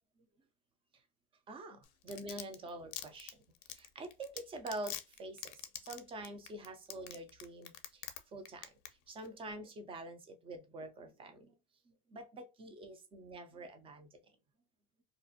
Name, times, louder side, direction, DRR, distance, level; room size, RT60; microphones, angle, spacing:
voice 1, 1.5-3.4 3.7-8.1 8.3-8.7 9.1-11.6 11.9-14.2, right 2 dB, 15° right, 0.3 m, -46 dB
Domestic sounds home sounds, 1.8-8.2 8.4-8.9 9.2-9.3, left 12 dB, 60° left, 0.5 m, -44 dB
2.5 x 2.0 x 2.5 m
supercardioid pair, 125°, 36 cm